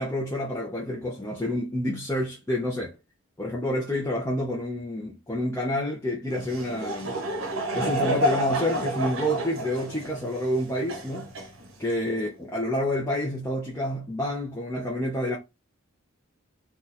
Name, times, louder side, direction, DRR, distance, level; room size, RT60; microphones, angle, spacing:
voice 1, 0.0-2.9 3.4-7.2 7.7-11.3 11.8-15.4, left 1 dB, 10° left, 0.6 m, -28 dB
Laughter / Crowd, 6.3-12.0, equal, 70° right, 0.7 m, -30 dB
2.6 x 2.3 x 4.0 m
head